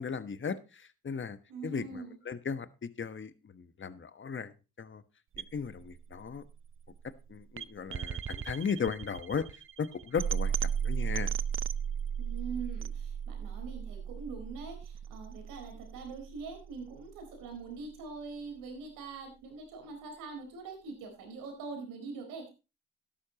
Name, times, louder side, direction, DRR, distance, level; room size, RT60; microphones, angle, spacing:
voice 1, 0.0-1.4 1.6-4.5 4.8-5.0 5.4-6.4 7.3-9.5 9.8-11.3, left 6 dB, 40° left, 12 dB, 1.3 m, -36 dB
voice 2, 1.5-2.2 12.2-22.5, right 4 dB, 85° right, 3 dB, 4.4 m, -43 dB
sound 1, 5.3-17.4, right 8 dB, 40° right, 0.7 m, -36 dB
13.0 x 11.5 x 3.0 m, 0.29 s
supercardioid pair, 55°, 32 cm